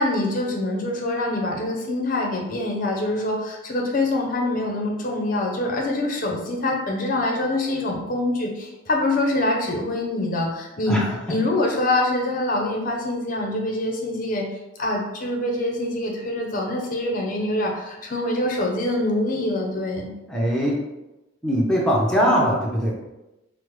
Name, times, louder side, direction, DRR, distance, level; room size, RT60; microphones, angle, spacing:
voice 1, 0.0-11.0 11.3-14.4 14.8-20.1, left 2 dB, 45° left, 0 dB, 0.5 m, -25 dB
voice 2, 10.9-11.4 20.3-20.9 21.4-22.9, equal, 5° left, -4 dB, 0.6 m, -21 dB
5.0 x 2.0 x 3.1 m, 1.0 s
head